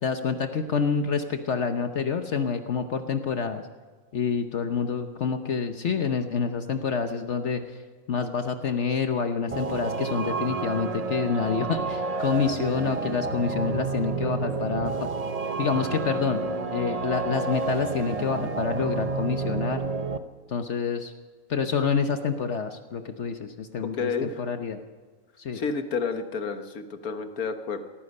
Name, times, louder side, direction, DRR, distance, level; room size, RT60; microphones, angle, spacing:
voice 1, 0.0-3.6 4.1-7.8 8.1-15.1 15.6-16.4 16.7-19.8 20.5-21.1 21.5-24.8 25.4-25.6, left 6 dB, 55° left, 7 dB, 1.1 m, -27 dB
sound 1, 9.5-20.2, right 4 dB, 35° right, 0.7 m, -30 dB
sound 2, 14.2-14.8 16.2-18.2, equal, 5° left, 2.3 m, -45 dB
voice 2, 23.8-24.4 25.5-27.8, left 5 dB, 85° left, 8 dB, 1.7 m, -30 dB
17.5 x 15.0 x 5.4 m, 1.5 s
omnidirectional pair, 1.5 m